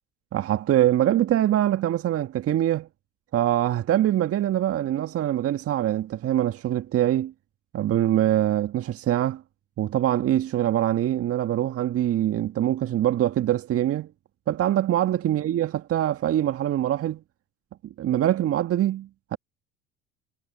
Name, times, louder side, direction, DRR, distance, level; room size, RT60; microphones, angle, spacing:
voice 1, 0.3-2.9 3.3-7.3 7.7-9.4 9.8-14.1 14.5-17.2 18.0-19.4, right 12 dB, 45° right, 1.7 m, -23 dB
hypercardioid pair, 65°, 32 cm